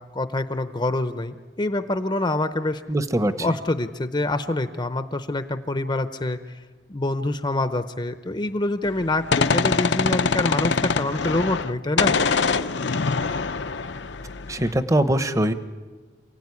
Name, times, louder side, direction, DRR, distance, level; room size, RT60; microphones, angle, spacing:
voice 1, 0.0-2.8 3.4-6.4 6.9-12.2, left 2 dB, 25° left, 9 dB, 0.8 m, -26 dB
voice 2, 2.9-3.6 14.5-15.5, right 1 dB, 15° right, 10 dB, 1.0 m, -22 dB
Gunshot gunfire, 8.9-11.7 12.0-14.7, left 4 dB, 65° left, 0.7 m, -24 dB
28.0 x 16.5 x 9.7 m, 1.4 s
head